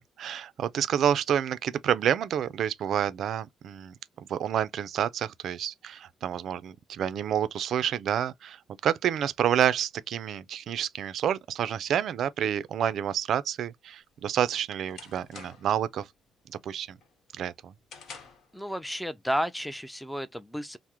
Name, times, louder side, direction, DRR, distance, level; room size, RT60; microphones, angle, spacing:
voice 1, 0.0-16.1 16.5-17.0 17.4-17.7, right 9 dB, 70° right, 0.3 m, -29 dB
sound 1, 14.1-15.8 16.2-16.6 17.0-18.5, left 5 dB, 70° left, 1.0 m, -48 dB
voice 2, 18.5-20.8, equal, ahead, 0.4 m, -32 dB
3.4 x 2.0 x 2.9 m
cardioid pair, 90°, 0 cm